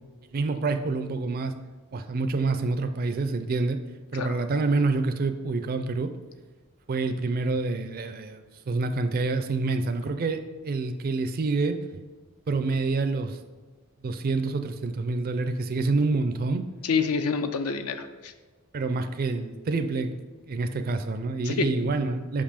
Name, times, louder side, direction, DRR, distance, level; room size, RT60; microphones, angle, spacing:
voice 1, 0.3-1.5 1.9-3.8 4.1-6.1 6.9-12.0 12.5-13.4 14.0-16.6 18.7-20.1 20.5-22.4, right 3 dB, 45° right, 8 dB, 0.4 m, -27 dB
voice 2, 16.8-18.3 21.4-21.7, left 5 dB, 75° left, 8 dB, 0.5 m, -27 dB
5.3 x 5.3 x 5.0 m, 1.3 s
head